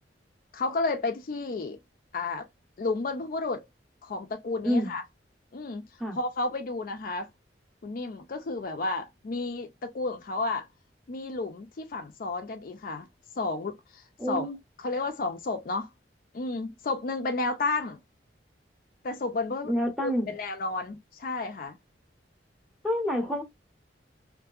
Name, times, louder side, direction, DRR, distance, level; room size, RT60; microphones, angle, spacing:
voice 1, 0.5-1.8 2.1-2.4 2.8-3.6 4.0-5.0 5.5-5.8 6.1-7.3 7.8-10.7 11.1-13.1 13.4-14.5 14.8-15.9 16.3-18.0 19.0-19.7 20.0-21.8, left 3 dB, 50° left, 0.4 m, -32 dB
voice 2, 4.6-4.9 6.0-6.2 14.2-14.6 19.7-20.3 22.8-23.4, equal, ahead, 0.7 m, -28 dB
2.6 x 2.5 x 2.3 m
head